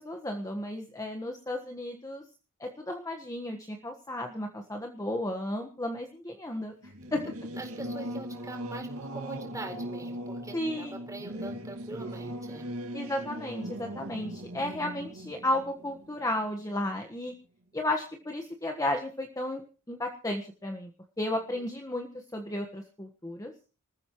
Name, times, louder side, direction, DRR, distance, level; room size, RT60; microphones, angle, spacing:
voice 1, 0.0-2.2 2.6-7.2 10.5-11.0 11.3-11.6 12.9-17.3 17.7-19.6 19.9-20.9 21.2-23.5, left 1 dB, 15° left, 4 dB, 1.4 m, -33 dB
Singing / Musical instrument, 6.8-16.9, right 1 dB, 75° right, 2.2 m, -39 dB
voice 2, 7.6-12.7 21.3-21.7, right 2 dB, 15° right, 3 dB, 4.2 m, -43 dB
26.5 x 14.5 x 3.1 m, 0.36 s
head